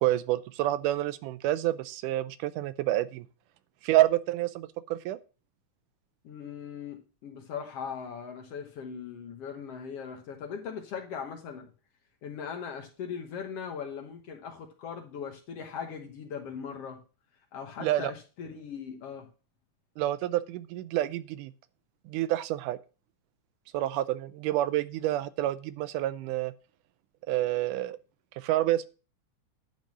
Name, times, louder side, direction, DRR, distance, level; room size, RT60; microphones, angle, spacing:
voice 1, 0.0-3.3 3.8-5.2 17.8-18.1 20.0-21.5 22.1-22.8 23.7-26.5 27.3-28.0 28.4-28.9, right 14 dB, 85° right, 2.2 m, -28 dB
voice 2, 6.2-11.7 12.2-17.0 17.5-19.3, left 7 dB, 60° left, 1.8 m, -39 dB
10.5 x 3.9 x 7.4 m
omnidirectional pair, 3.6 m